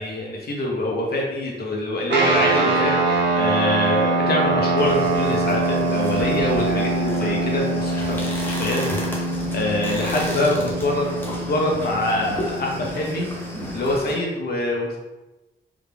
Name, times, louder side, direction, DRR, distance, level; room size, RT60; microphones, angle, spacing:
voice 1, 0.0-2.9 3.4-8.8 9.1-9.3 9.5-11.1 11.5-13.3 13.7-15.0, left 1 dB, 50° left, -1 dB, 0.8 m, -24 dB
sound 1, 2.1-13.9, right 2 dB, 60° right, 0.5 m, -24 dB
sound 2, 4.8-14.2, equal, 10° left, 0.6 m, -33 dB
3.6 x 2.3 x 3.3 m, 1.0 s
wide cardioid pair, 175°, 20 cm